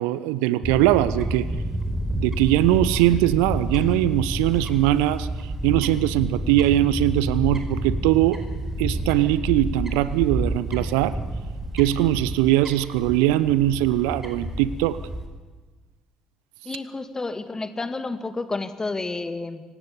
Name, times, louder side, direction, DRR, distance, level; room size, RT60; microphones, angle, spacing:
voice 1, 0.0-1.5 2.1-5.3 5.6-8.4 8.8-11.2 11.7-15.0, right 14 dB, 65° right, 17 dB, 0.7 m, -21 dB
Fowl / Bird, 0.6-15.3, right 1 dB, 15° right, 5.0 m, -29 dB
voice 2, 16.7-19.6, left 3 dB, 20° left, 10 dB, 1.9 m, -30 dB
25.5 x 16.5 x 8.6 m, 1.3 s
figure-of-eight pair, 50°, 3 cm